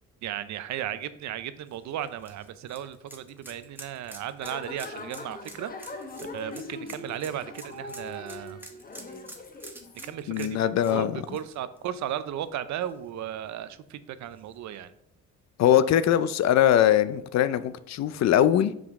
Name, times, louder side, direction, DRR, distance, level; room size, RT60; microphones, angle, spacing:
voice 1, 0.2-6.0 6.3-8.6 9.9-10.6 10.9-14.9, right 10 dB, 70° right, 13 dB, 0.5 m, -35 dB
sound 1, 1.7-12.4 12.8-12.9 14.4-14.5, right 1 dB, 5° right, 0.9 m, -48 dB
sound 2, 4.4-10.2, left 2 dB, 30° left, 0.8 m, -41 dB
voice 2, 10.3-11.2 15.6-18.7, left 10 dB, 60° left, 14 dB, 0.5 m, -22 dB
5.2 x 5.0 x 3.6 m, 0.75 s
cardioid pair, 90°, 30 cm